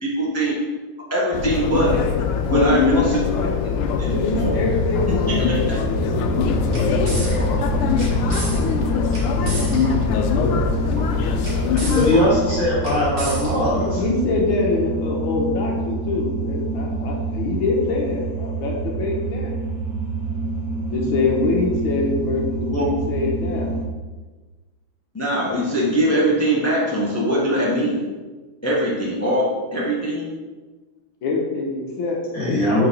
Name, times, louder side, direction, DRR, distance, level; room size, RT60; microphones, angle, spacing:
voice 1, 0.0-0.6 1.0-1.9 2.5-3.2 3.6-3.7 4.0-4.6 5.1-5.8 22.7-22.8 25.1-28.1 28.6-30.3, right 1 dB, 20° left, -5 dB, 0.3 m, -22 dB
sound 1, 1.3-12.2, left 6 dB, 90° left, 1.5 m, -22 dB
voice 2, 1.8-2.2 2.4-3.5 3.9-5.7 6.0-7.8 10.3-10.6 11.2-11.5 13.7-19.5 20.7-23.8 31.2-32.5, left 3 dB, 70° left, -1 dB, 1.8 m, -25 dB
sound 2, 4.3-23.9, right 3 dB, 90° right, 0.7 m, -27 dB
sound 3, 6.3-14.4, equal, 40° right, 0.9 m, -32 dB
voice 3, 12.0-14.0 32.3-32.9, left 1 dB, 45° left, -9 dB, 2.2 m, -20 dB
4.5 x 4.0 x 5.2 m, 1.3 s
omnidirectional pair, 2.3 m